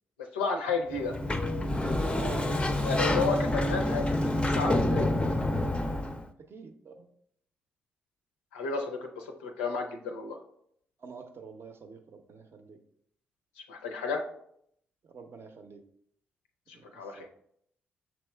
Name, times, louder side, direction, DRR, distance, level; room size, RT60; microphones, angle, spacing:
voice 1, 0.3-1.1 2.8-5.0 8.5-10.4 13.7-14.2 16.9-17.3, left 4 dB, 80° left, 3 dB, 0.4 m, -32 dB
Sliding door, 0.9-6.2, left 1 dB, 20° left, 0.4 m, -28 dB
voice 2, 2.0-2.8 6.4-7.1 11.0-12.8 15.0-15.8 16.7-17.3, right 5 dB, 50° right, 6 dB, 0.6 m, -46 dB
6.1 x 3.0 x 2.2 m, 0.70 s
hypercardioid pair, 40°, 5 cm